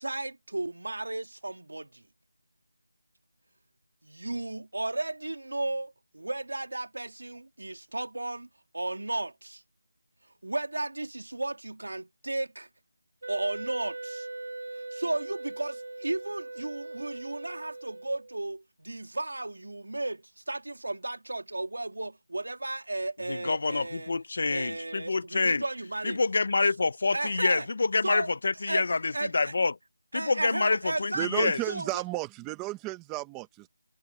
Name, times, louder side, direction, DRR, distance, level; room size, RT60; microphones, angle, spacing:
voice 1, 0.0-2.0 4.0-8.5 8.7-9.6 10.4-12.7 13.3-14.3 14.9-24.1 24.5-26.2 27.1-27.7 28.0-28.8 29.1-29.6 30.1-31.9, right 2 dB, 90° right, 2.1 m, -34 dB
Wind instrument woodwind instrument, 13.2-18.4, right 2 dB, 70° right, 1.6 m, -40 dB
voice 2, 23.3-25.6 26.0-29.7 30.1-31.6, left 3 dB, 35° left, 0.7 m, -27 dB
voice 3, 31.1-33.7, right 20 dB, 5° right, 0.7 m, -33 dB
figure-of-eight pair, 180°, 0 cm